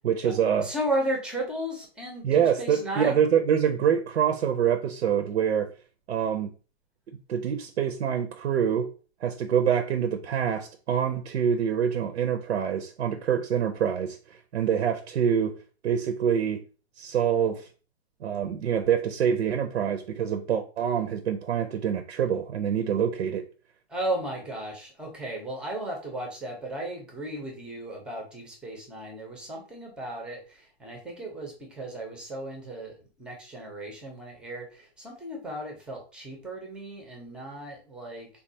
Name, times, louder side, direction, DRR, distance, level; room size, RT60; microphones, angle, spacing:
voice 1, 0.0-0.7 2.2-5.7 6.1-6.5 7.3-8.9 9.2-15.5 15.8-16.6 17.0-17.7 18.2-23.4, right 8 dB, 90° right, 6 dB, 0.5 m, -25 dB
voice 2, 0.6-3.2 23.9-38.3, right 1 dB, 5° right, 1 dB, 0.4 m, -35 dB
3.6 x 2.3 x 2.6 m, 0.36 s
hypercardioid pair, 140°, 33 cm